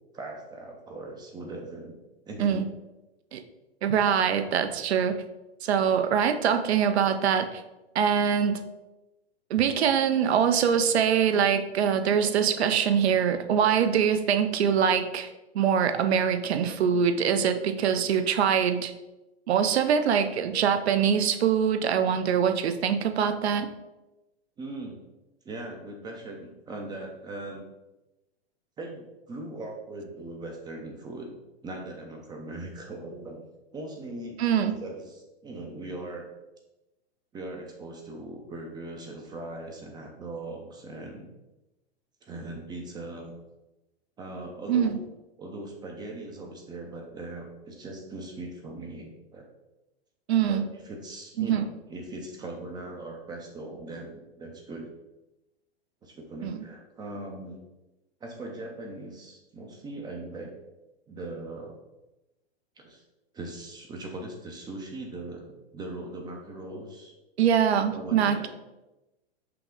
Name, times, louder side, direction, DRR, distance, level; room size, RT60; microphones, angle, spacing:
voice 1, 0.1-2.0 2.3-2.6 4.7-5.1 24.6-25.0 25.4-27.6 28.8-31.3 31.6-33.4 33.7-34.4 34.7-36.3 37.3-41.3 42.2-43.3 44.2-45.0 45.4-49.5 50.4-54.9 56.0-57.6 58.2-60.5 61.1-61.7 62.8-63.0 63.3-67.1 67.9-68.5, right 2 dB, 15° right, 1 dB, 0.4 m, -40 dB
voice 2, 3.8-5.2 5.6-7.6 7.9-8.6 9.5-15.3 15.5-18.9 19.5-23.7 34.4-34.7 44.7-45.0 50.3-50.6 51.4-51.7 56.4-56.6 67.4-68.5, right 8 dB, 75° right, 8 dB, 0.5 m, -23 dB
5.7 x 2.1 x 3.6 m, 1.0 s
hypercardioid pair, 110°, 32 cm